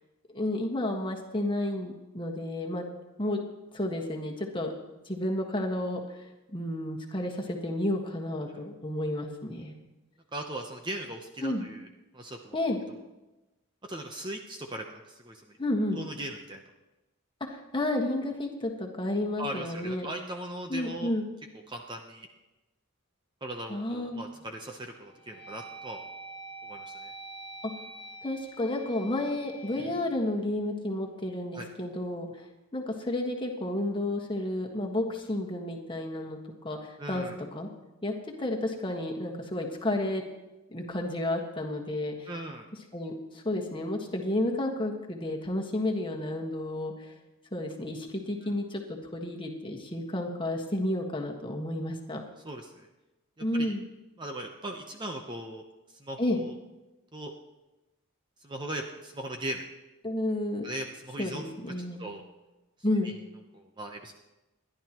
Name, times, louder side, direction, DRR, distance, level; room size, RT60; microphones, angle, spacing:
voice 1, 0.3-2.8 3.2-3.4 3.7-4.7 5.0-6.2 6.5-9.7 11.4-11.6 12.5-12.8 15.6-16.0 17.4-20.1 20.7-21.3 23.7-24.2 28.2-32.5 32.7-36.4 36.6-37.7 38.0-40.2 40.7-42.3 42.9-47.1 47.5-52.2 53.4-53.9 56.2-56.4 60.0-60.7 61.2-62.0 62.8-63.1, left 1 dB, 25° left, 1 dB, 1.5 m, -31 dB
voice 2, 10.3-11.9 12.1-12.6 13.9-15.4 15.9-16.6 19.4-21.1 21.7-22.3 23.4-26.0 26.6-27.1 31.5-31.7 37.0-37.3 42.3-42.6 48.4-48.5 52.4-52.9 53.4-53.7 54.2-55.6 56.0-56.5 57.1-57.3 58.4-59.6 60.6-61.5 62.0-62.2 63.0-63.1 63.5-64.1, right 1 dB, 20° right, 3 dB, 0.8 m, -39 dB
sound 1, 24.0-24.5 25.0-31.2, right 2 dB, 35° right, 6.7 m, -46 dB
28.0 x 11.5 x 3.0 m, 1.1 s
head